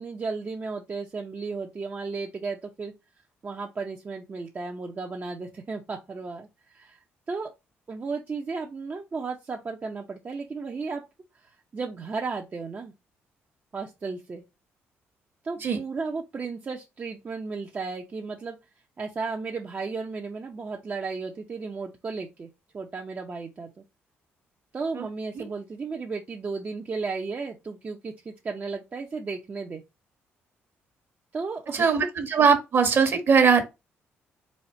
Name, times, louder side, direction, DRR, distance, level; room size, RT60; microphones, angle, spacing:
voice 1, 0.0-2.9 3.4-7.0 7.3-7.5 7.9-11.0 11.4-12.9 13.7-14.4 15.4-18.6 19.0-23.7 24.7-29.8 31.3-31.9, right 4 dB, 35° right, 0.7 m, -34 dB
voice 2, 31.7-33.6, right 6 dB, 55° right, 1.3 m, -20 dB
4.2 x 2.4 x 4.3 m
supercardioid pair, 70°, 5 cm